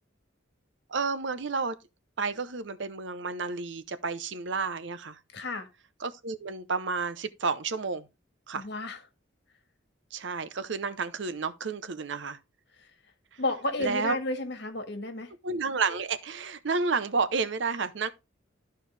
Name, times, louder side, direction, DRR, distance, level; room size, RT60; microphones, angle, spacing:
voice 1, 0.9-1.7 2.2-5.2 6.0-8.0 8.5-8.6 10.1-12.4 13.8-14.2 15.4-18.1, right 4 dB, 65° right, 0.7 m, -31 dB
voice 2, 5.3-5.7 8.5-9.0 13.4-15.3, left 2 dB, 60° left, 1.7 m, -32 dB
13.0 x 4.6 x 3.3 m
head